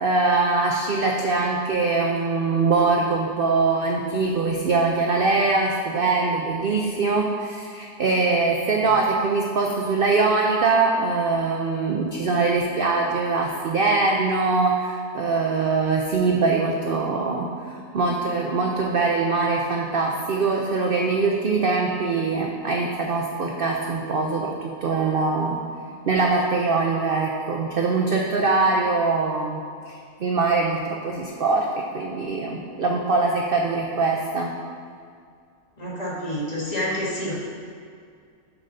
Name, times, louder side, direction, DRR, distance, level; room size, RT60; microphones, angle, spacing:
voice 1, 0.0-25.6 26.0-29.9 30.2-34.5, right 3 dB, 75° right, 0 dB, 0.5 m, -23 dB
voice 2, 35.8-37.3, left 1 dB, 25° left, -7 dB, 1.5 m, -28 dB
7.6 x 3.9 x 5.4 m, 2.2 s
omnidirectional pair, 1.6 m